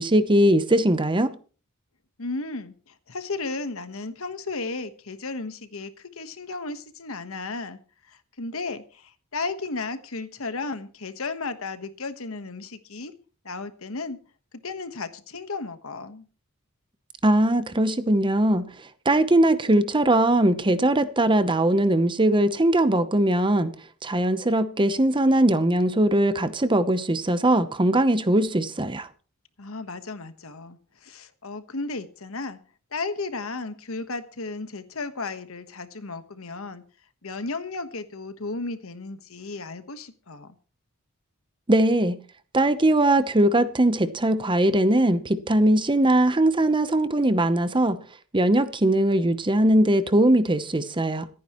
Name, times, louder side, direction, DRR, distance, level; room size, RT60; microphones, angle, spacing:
voice 1, 0.0-1.3 17.2-18.7 19.1-23.7 24.0-29.1 41.7-42.2 42.5-48.0 48.3-51.3, right 1 dB, 25° right, 0.8 m, -20 dB
voice 2, 2.2-7.8 8.1-13.1 13.4-14.2 14.6-16.2 29.6-32.6 32.9-36.8 37.2-40.5, left 3 dB, 75° left, 1.3 m, -34 dB
26.0 x 9.4 x 3.1 m
head